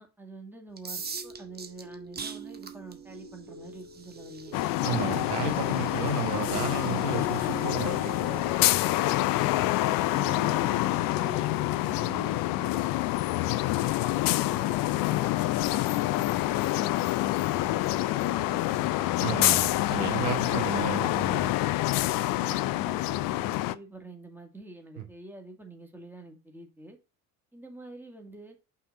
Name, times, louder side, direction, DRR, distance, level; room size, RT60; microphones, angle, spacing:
voice 1, 0.0-4.5 6.8-7.1 9.3-12.9 13.3-19.2 22.4-27.0 27.5-28.6, right 3 dB, 5° right, 2.1 m, -46 dB
sound 1, 0.7-12.5, right 5 dB, 20° right, 1.1 m, -46 dB
sound 2, 1.0-12.4, right 3 dB, 45° right, 2.6 m, -44 dB
sound 3, 4.5-23.8, left 17 dB, 50° left, 0.5 m, -27 dB
voice 2, 4.8-8.4 19.2-21.5 25.0-25.1, right 6 dB, 80° right, 1.4 m, -33 dB
5.7 x 4.1 x 4.9 m
hypercardioid pair, 60°, 45 cm